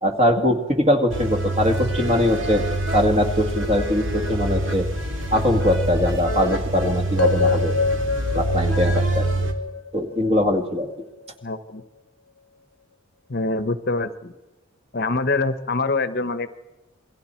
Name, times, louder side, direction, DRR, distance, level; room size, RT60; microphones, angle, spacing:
voice 1, 0.0-2.6 2.9-4.9 5.3-7.7 8.3-9.3 9.9-10.9, left 1 dB, 30° right, 4 dB, 2.1 m, -21 dB
sound 1, 1.1-9.5, right 1 dB, 65° right, 2.4 m, -25 dB
sound 2, 7.2-11.3, left 4 dB, 90° left, 1.0 m, -26 dB
voice 2, 11.4-11.8 13.3-14.3 14.9-16.6, left 3 dB, 50° left, 11 dB, 1.0 m, -25 dB
27.5 x 22.0 x 4.5 m, 1.1 s
head